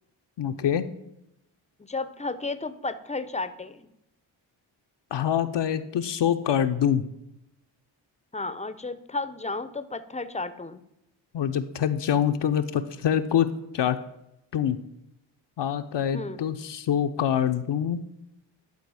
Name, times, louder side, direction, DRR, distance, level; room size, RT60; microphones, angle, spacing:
voice 1, 0.4-0.9 5.1-7.0 11.3-13.5 13.7-14.0 14.5-14.8 15.6-18.0, left 9 dB, 60° left, 8 dB, 0.6 m, -25 dB
voice 2, 1.8-3.9 8.3-10.8 16.1-16.4, left 3 dB, 15° left, 13 dB, 0.6 m, -33 dB
11.0 x 4.0 x 4.8 m, 0.86 s
supercardioid pair, 40°, 49 cm